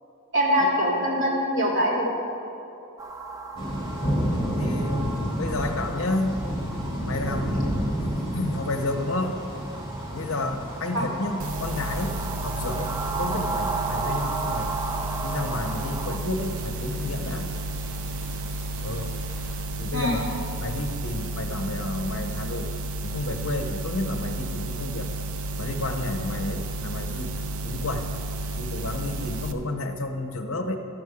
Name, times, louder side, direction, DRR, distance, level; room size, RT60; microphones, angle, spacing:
voice 1, 0.3-2.0 10.9-11.1 19.9-20.2, equal, 55° right, -6 dB, 2.9 m, -23 dB
sound 1, 3.0-16.2, right 3 dB, 15° right, 0.5 m, -35 dB
sound 2, 3.6-19.6, equal, 20° left, 2.5 m, -33 dB
voice 2, 4.5-6.4 7.1-7.9 8.3-9.4 10.1-14.7 15.2-17.5 18.8-19.1 19.8-22.7 23.0-25.1 25.6-27.3 27.6-28.1 28.5-30.8, left 2 dB, 65° left, 5 dB, 0.8 m, -31 dB
sound 3, 11.4-29.5, right 2 dB, 75° right, 0.6 m, -32 dB
13.0 x 6.2 x 6.0 m, 2.9 s
head